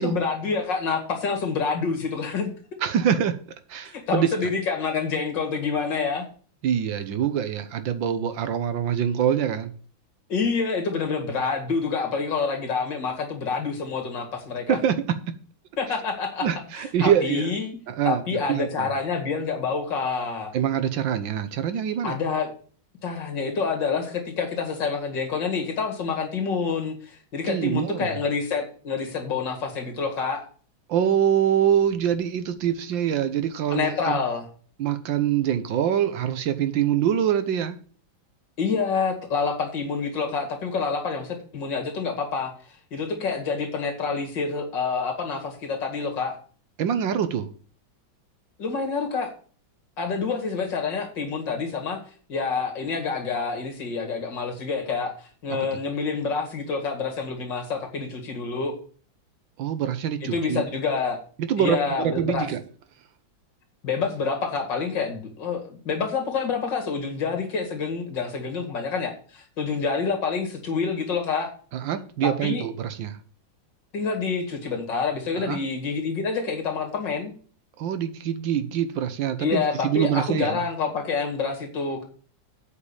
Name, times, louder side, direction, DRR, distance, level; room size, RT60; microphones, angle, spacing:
voice 1, 0.0-2.5 3.9-6.3 10.3-14.8 15.8-16.5 16.8-17.8 18.0-20.5 22.0-22.5 23.0-30.4 33.7-34.5 38.6-42.5 42.9-46.4 48.6-49.3 50.0-52.0 52.3-55.1 55.4-58.7 60.2-61.2 61.6-62.5 63.8-71.5 72.2-72.7 73.9-77.3 79.4-82.0, left 5 dB, 65° left, 2.7 m, -27 dB
voice 2, 2.8-3.4 3.7-4.3 6.6-9.7 14.7-15.2 16.4-17.5 17.9-18.9 20.5-22.2 27.5-28.1 30.9-34.2 34.8-37.8 46.8-47.5 59.6-60.6 61.4-62.6 71.7-73.2 75.4-75.6 77.8-80.6, right 9 dB, 75° right, 1.5 m, -24 dB
8.3 x 5.2 x 7.0 m
omnidirectional pair, 2.2 m